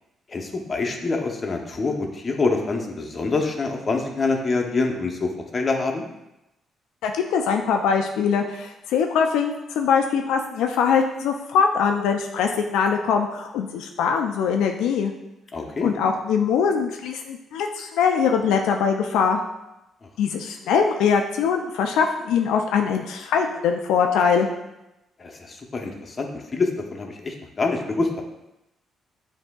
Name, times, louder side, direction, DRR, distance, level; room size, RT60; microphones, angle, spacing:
voice 1, 0.3-6.0 15.5-15.9 25.2-28.2, left 3 dB, 35° left, 1 dB, 0.7 m, -26 dB
voice 2, 7.0-15.1 15.8-19.4 20.2-24.5, left 6 dB, 90° left, 3 dB, 0.3 m, -22 dB
7.6 x 2.6 x 2.3 m, 0.94 s
cardioid pair, 90°, 0 cm